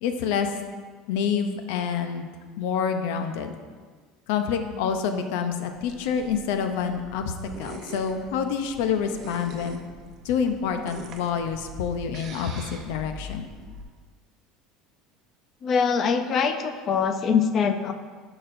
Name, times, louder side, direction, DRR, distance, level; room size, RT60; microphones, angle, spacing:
voice 1, 0.0-0.5 1.1-2.3 2.6-3.5 4.3-9.8 10.2-13.5, left 7 dB, 75° left, 7 dB, 0.7 m, -27 dB
sound 1, 5.7-13.8, right 1 dB, 40° right, 0.8 m, -43 dB
voice 2, 15.6-17.9, left 6 dB, 30° left, 8 dB, 0.5 m, -23 dB
11.0 x 6.0 x 2.6 m, 1.5 s
cardioid pair, 160°, 0 cm